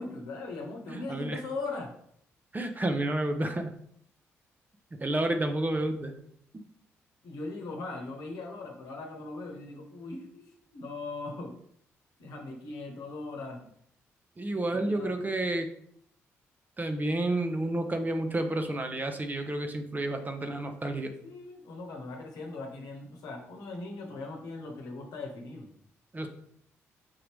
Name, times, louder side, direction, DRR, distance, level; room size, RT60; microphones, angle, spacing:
voice 1, 0.0-1.9 7.2-10.4 10.7-11.6 12.2-13.6 14.6-15.1 21.2-25.7, left 3 dB, 75° left, 1 dB, 1.0 m, -39 dB
voice 2, 0.9-1.4 2.5-3.7 5.0-6.1 14.4-15.7 16.8-21.1 26.1-26.3, right 1 dB, 25° right, 6 dB, 0.8 m, -30 dB
5.2 x 2.8 x 3.4 m, 0.67 s
hypercardioid pair, 45°, 7 cm